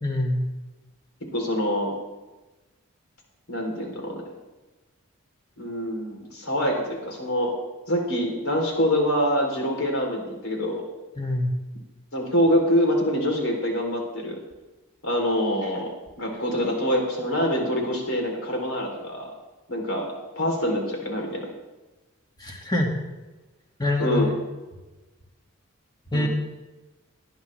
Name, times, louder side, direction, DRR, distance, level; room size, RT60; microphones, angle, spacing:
voice 1, 0.0-0.4 11.2-11.5 22.4-22.9 23.8-24.4 26.1-26.3, left 1 dB, 20° left, 0 dB, 1.7 m, -24 dB
voice 2, 1.3-1.9 3.5-4.3 5.6-7.5 7.9-10.8 12.1-14.4 15.0-15.9 16.2-19.3 19.7-21.5 24.0-24.3 26.1-26.3, equal, 85° left, 1 dB, 3.1 m, -25 dB
19.0 x 10.0 x 3.2 m, 1.1 s
head